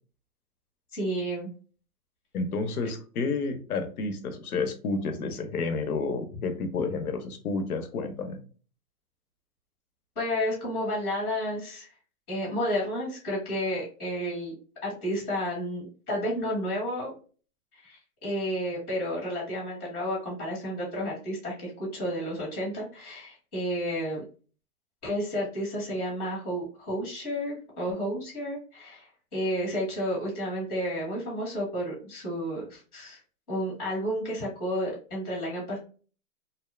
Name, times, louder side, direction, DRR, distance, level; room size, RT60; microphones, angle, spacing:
voice 1, 0.9-1.5 10.1-11.9 12.3-14.5 14.8-17.2 17.7-24.2 25.0-33.2 33.5-35.8, equal, 5° left, -20 dB, 0.3 m, -31 dB
voice 2, 2.3-8.4, left 4 dB, 80° left, 8 dB, 0.7 m, -30 dB
2.7 x 2.1 x 2.4 m, 0.39 s
hypercardioid pair, 140°, 44 cm